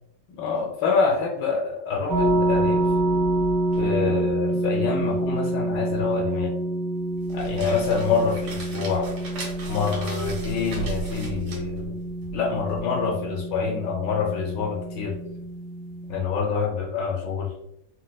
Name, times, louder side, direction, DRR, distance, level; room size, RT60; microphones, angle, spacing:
voice 1, 0.3-2.9 3.8-6.6 7.3-9.1 9.7-12.0 12.3-15.1 16.1-17.5, left 5 dB, 75° left, 1 dB, 1.0 m, -26 dB
sound 1, 2.1-16.2, right 1 dB, 50° right, 1.2 m, -27 dB
sound 2, 7.1-12.8, right 4 dB, 90° right, 1.9 m, -37 dB
4.2 x 2.1 x 2.2 m, 0.82 s
omnidirectional pair, 2.3 m